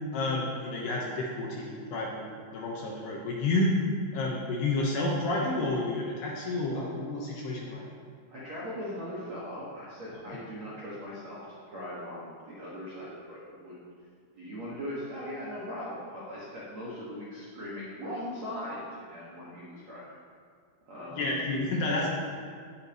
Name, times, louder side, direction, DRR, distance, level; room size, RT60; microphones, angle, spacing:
voice 1, 0.1-3.8 4.1-7.8 10.3-10.4 21.1-22.1, left 2 dB, 70° left, -3 dB, 2.8 m, -30 dB
voice 2, 8.3-11.4 11.7-13.8 14.4-20.0 20.9-21.5, equal, 55° right, -9 dB, 2.0 m, -39 dB
16.5 x 9.6 x 3.1 m, 2.1 s
omnidirectional pair, 5.8 m